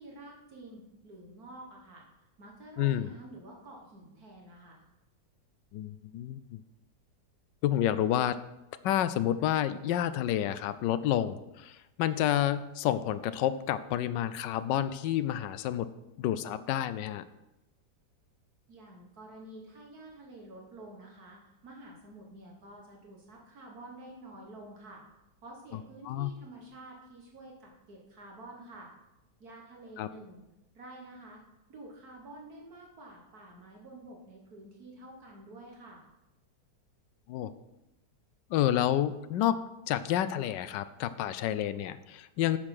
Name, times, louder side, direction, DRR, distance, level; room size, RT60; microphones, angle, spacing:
voice 1, 0.0-4.8 18.7-25.0 25.4-28.9 29.4-30.4 30.8-31.4 31.7-36.1, right 1 dB, 60° right, -1 dB, 2.0 m, -49 dB
voice 2, 2.8-3.1 5.7-6.6 7.6-8.4 8.8-15.9 16.2-17.2 26.1-26.3 30.0-30.1 37.3-37.5 38.5-39.6 39.9-42.6, left 11 dB, 85° left, 14 dB, 1.2 m, -29 dB
8.6 x 6.4 x 6.0 m, 0.94 s
omnidirectional pair, 1.9 m